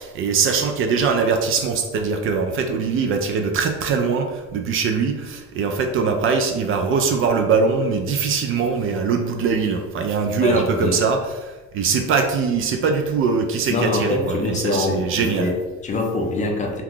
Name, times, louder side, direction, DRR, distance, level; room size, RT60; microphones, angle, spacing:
voice 1, 0.0-15.5, right 5 dB, 45° right, 5 dB, 0.4 m, -22 dB
voice 2, 10.4-11.0 13.7-16.8, left 2 dB, 25° left, 1 dB, 0.5 m, -24 dB
2.8 x 2.3 x 3.7 m, 1.2 s
supercardioid pair, 110°, 30 cm